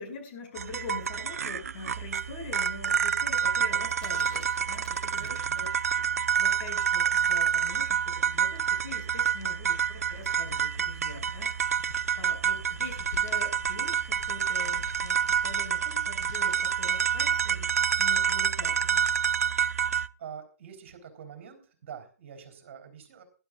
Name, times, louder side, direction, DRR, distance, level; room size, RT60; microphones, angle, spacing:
voice 1, 0.0-5.7 6.0-6.1 6.4-11.5 12.2-19.1, left 3 dB, 40° left, 3 dB, 5.5 m, -43 dB
sound 1, 0.6-20.1, right 8 dB, 70° right, 0.6 m, -28 dB
sound 2, 4.0-6.0 8.5-8.7, left 4 dB, 10° left, 1.7 m, -53 dB
voice 2, 5.2-5.6 20.2-23.2, right 8 dB, 50° right, 4 dB, 3.8 m, -45 dB
sound 3, 6.9-17.5, left 4 dB, 85° left, 1.4 m, -48 dB
20.0 x 11.5 x 2.5 m, 0.37 s
hypercardioid pair, 140°, 8 cm